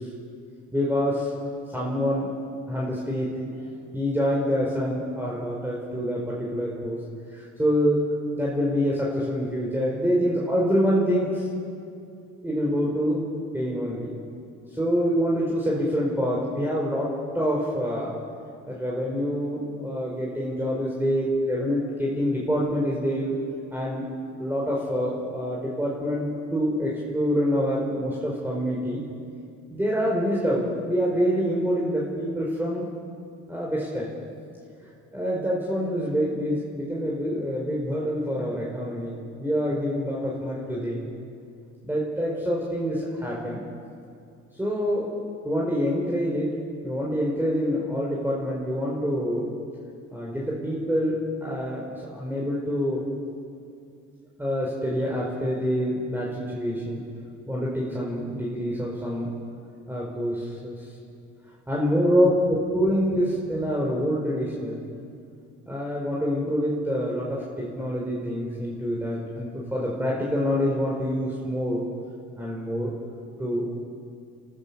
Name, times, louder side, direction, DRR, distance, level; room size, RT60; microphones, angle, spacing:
voice 1, 0.7-1.3 1.7-2.3 2.7-3.7 3.9-7.0 7.3-8.0 8.3-11.5 12.4-13.2 13.5-14.1 14.7-18.1 18.7-23.3 23.7-24.1 24.4-29.1 29.7-32.8 33.5-34.1 35.1-41.1 41.8-43.6 44.6-45.1 45.4-46.5 46.8-49.5 50.1-51.1 51.4-53.0 54.4-57.0 57.5-59.3 59.9-60.7 61.7-64.8 65.7-71.8 72.4-72.9 73.4-73.7, equal, 5° right, -4 dB, 4.7 m, -26 dB
26.5 x 15.5 x 7.0 m, 2.5 s
cardioid pair, 90°, 30 cm